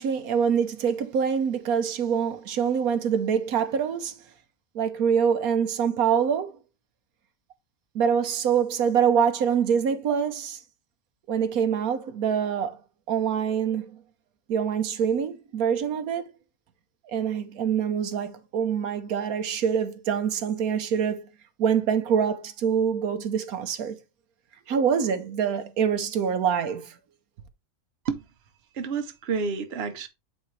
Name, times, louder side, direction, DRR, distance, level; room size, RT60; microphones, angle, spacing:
voice 1, 0.0-4.2 4.7-6.6 7.9-10.6 11.3-12.8 13.1-14.0 14.5-16.3 17.0-21.3 21.6-24.0 24.7-27.0, right 7 dB, 85° right, 1.3 m, -25 dB
voice 2, 28.7-30.1, right 5 dB, 50° right, 1.0 m, -29 dB
8.5 x 4.3 x 3.2 m
omnidirectional pair, 1.5 m